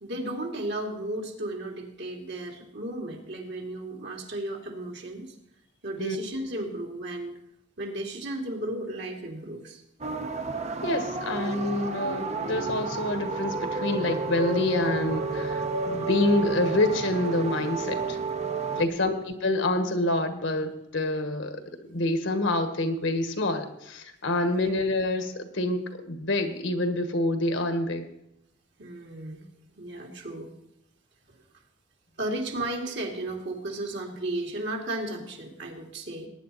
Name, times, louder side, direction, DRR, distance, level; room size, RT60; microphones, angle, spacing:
voice 1, 0.0-5.3 5.8-7.4 7.8-9.8 18.7-19.1 24.5-24.7 28.8-29.4 29.8-30.5 31.3-31.4 32.2-36.3, right 1 dB, 60° right, 1 dB, 2.6 m, -34 dB
sound 1, 10.0-18.9, right 3 dB, 35° right, 0.9 m, -31 dB
voice 2, 10.8-18.2 18.8-28.0, left 2 dB, 70° left, 7 dB, 1.5 m, -27 dB
19.0 x 9.8 x 4.1 m, 0.82 s
head